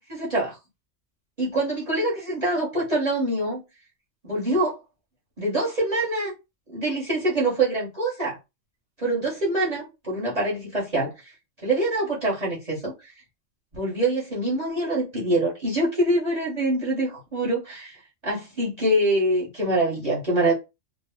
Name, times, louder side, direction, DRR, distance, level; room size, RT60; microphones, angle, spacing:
voice 1, 0.1-0.6 1.4-3.6 4.2-4.8 5.4-6.3 6.7-8.4 9.0-11.1 11.6-13.1 13.7-18.0 18.2-20.5, right 1 dB, 35° right, 1.1 m, -25 dB
2.9 x 2.1 x 3.5 m
omnidirectional pair, 1.3 m